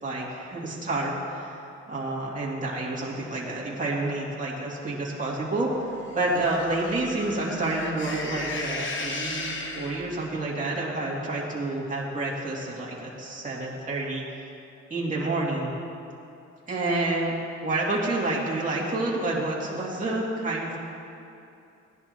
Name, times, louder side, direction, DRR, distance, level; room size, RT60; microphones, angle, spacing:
voice 1, 0.0-1.6 1.9-5.9 6.1-14.2 14.9-15.7 16.7-17.4 17.6-20.8, right 2 dB, 25° right, -5 dB, 2.6 m, -29 dB
sound 1, 6.0-10.3, left 3 dB, 40° left, 1.3 m, -35 dB
18.0 x 11.0 x 2.9 m, 2.7 s
cardioid pair, 90°, 30 cm